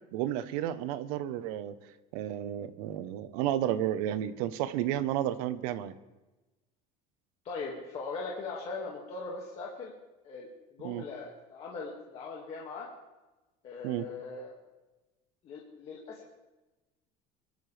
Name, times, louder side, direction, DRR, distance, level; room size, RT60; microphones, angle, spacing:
voice 1, 0.1-1.7 2.1-5.9 10.8-11.0 13.8-14.1, right 12 dB, 90° right, 12 dB, 1.1 m, -32 dB
voice 2, 7.4-9.9 10.2-12.9 13.6-14.5 15.4-16.3, left 4 dB, 30° left, -3 dB, 2.2 m, -40 dB
25.5 x 13.0 x 3.4 m, 1.1 s
cardioid pair, 175°, 18 cm